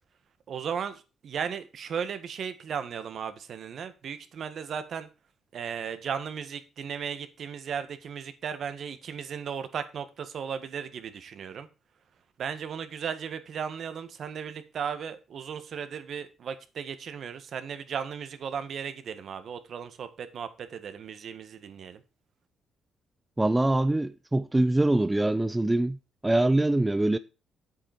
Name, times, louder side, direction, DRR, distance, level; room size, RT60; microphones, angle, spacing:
voice 1, 0.5-5.1 5.5-11.7 12.4-22.0, right 7 dB, 60° right, 1.6 m, -36 dB
voice 2, 23.4-26.0 26.2-27.2, right 2 dB, 15° right, 0.6 m, -24 dB
8.5 x 8.1 x 4.5 m
cardioid pair, 90°, 0 cm